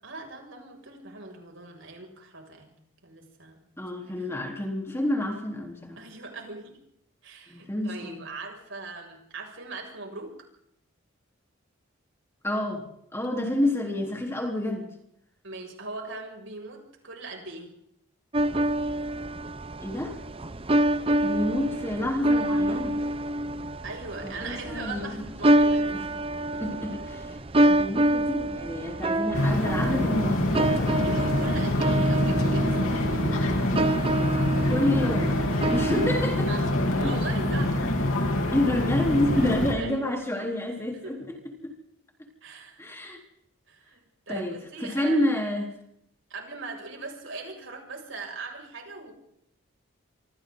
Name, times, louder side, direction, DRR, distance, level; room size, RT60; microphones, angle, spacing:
voice 1, 0.0-2.7 3.0-3.6 4.2-4.3 6.0-6.8 7.2-10.3 15.4-17.7 23.8-26.1 27.5-27.8 31.0-34.0 36.5-38.4 39.4-39.5 39.8-40.5 41.0-41.2 42.4-42.8 43.7-45.3 46.3-49.1, right 3 dB, 65° right, 1 dB, 6.8 m, -40 dB
voice 2, 3.8-6.0 7.5-8.2 12.4-12.8 13.1-14.9 19.8-20.2 21.2-23.0 24.2-25.2 25.9-26.1 26.5-27.3 27.6-31.2 34.7-35.3 35.7-36.5 37.0-37.2 38.5-41.4 41.6-41.7 42.8-43.2 44.3-45.7, left 1 dB, 10° left, 1 dB, 3.9 m, -29 dB
sound 1, 18.3-36.2, right 1 dB, 25° right, 0.8 m, -27 dB
sound 2, 29.3-39.7, left 1 dB, 85° left, 3.6 m, -25 dB
27.5 x 25.5 x 4.0 m, 0.73 s
head